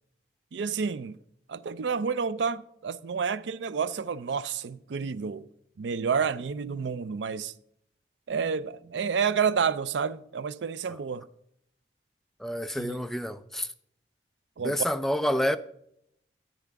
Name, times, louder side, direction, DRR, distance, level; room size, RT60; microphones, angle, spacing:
voice 1, 0.5-1.2 1.5-5.5 5.8-7.5 8.3-11.2 12.8-13.0 14.6-14.7, right 6 dB, 85° right, 0.4 m, -29 dB
voice 2, 12.4-13.7 14.6-15.6, equal, ahead, 0.4 m, -28 dB
13.5 x 9.2 x 3.5 m
head